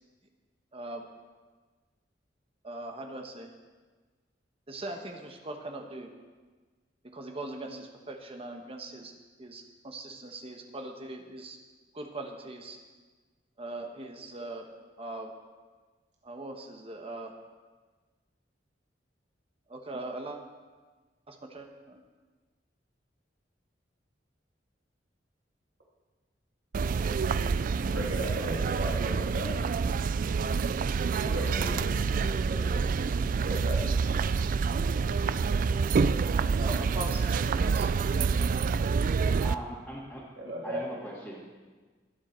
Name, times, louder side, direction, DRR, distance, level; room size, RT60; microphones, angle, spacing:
voice 1, 0.7-1.1 2.6-3.5 4.7-6.1 7.0-9.1 9.4-11.6 11.9-12.8 13.6-14.7 15.0-15.3 16.2-17.3 19.7-20.4 21.3-22.0 36.6-37.9, right 2 dB, 35° right, 4 dB, 1.2 m, -40 dB
sound 1, 26.7-39.6, right 5 dB, 50° right, 0.3 m, -27 dB
voice 2, 27.8-29.5 31.2-31.8 32.4-32.8 33.4-33.8 40.4-40.8, right 1 dB, 75° right, -4 dB, 2.4 m, -35 dB
voice 3, 39.4-40.2 40.6-41.4, equal, 5° left, -8 dB, 2.2 m, -40 dB
22.0 x 7.6 x 4.5 m, 1.4 s
head